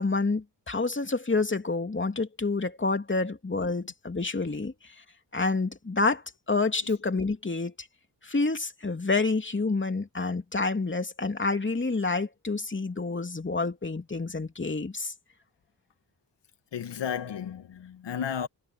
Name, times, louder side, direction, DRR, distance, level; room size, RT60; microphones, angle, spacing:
voice 1, 0.0-4.7 5.3-7.7 8.2-15.1, left 3 dB, 25° left, 2.9 m, -28 dB
voice 2, 16.7-18.5, left 8 dB, 70° left, 2.2 m, -33 dB
supercardioid pair, 45°, 43 cm